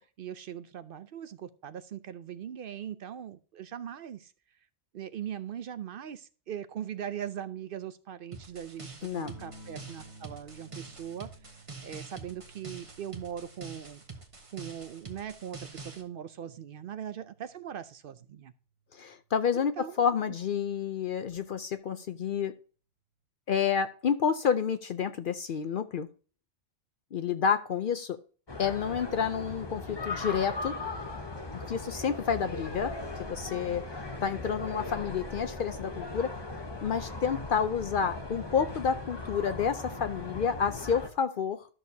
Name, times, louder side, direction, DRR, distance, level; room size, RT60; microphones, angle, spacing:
voice 1, 0.2-4.3 4.9-11.3 11.8-14.0 14.5-18.5 19.5-20.0, right 9 dB, 60° right, 12 dB, 0.7 m, -40 dB
sound 1, 8.3-16.0, right 3 dB, 30° right, 1.2 m, -46 dB
voice 2, 9.0-9.3 18.9-22.5 23.5-26.1 27.1-28.2 28.6-30.7 31.5-32.9 33.2-36.3 36.8-41.7, left 7 dB, 60° left, 10 dB, 0.7 m, -29 dB
sound 2, 9.2-18.3 19.8-20.3, right 3 dB, 75° left, 1.8 m, -55 dB
sound 3, 28.5-41.1, left 2 dB, 25° left, 0.9 m, -38 dB
13.0 x 6.4 x 2.7 m, 0.38 s
omnidirectional pair, 1.1 m